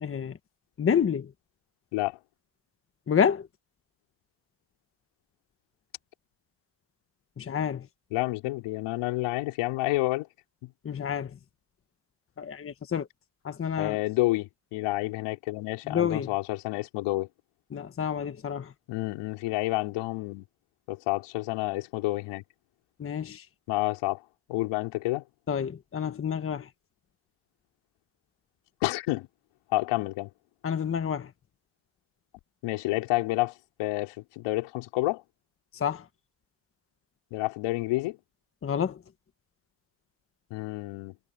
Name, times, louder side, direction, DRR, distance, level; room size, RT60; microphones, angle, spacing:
voice 1, 0.0-0.4 0.8-1.3 3.1-3.5 7.4-7.9 10.8-11.4 12.4-13.1 13.4-14.0 15.9-16.3 17.7-18.7 23.0-23.5 25.5-26.7 30.6-31.3 35.7-36.1 38.6-39.0, left 7 dB, 25° left, 1.3 m, -29 dB
voice 2, 8.1-10.3 10.6-10.7 13.8-17.3 18.9-20.5 20.9-22.4 23.7-24.2 24.5-25.2 28.8-29.3 29.7-30.3 32.6-35.2 37.3-38.2 40.5-41.2, left 20 dB, 80° left, 4.8 m, -29 dB
cardioid pair, 120°, 50 cm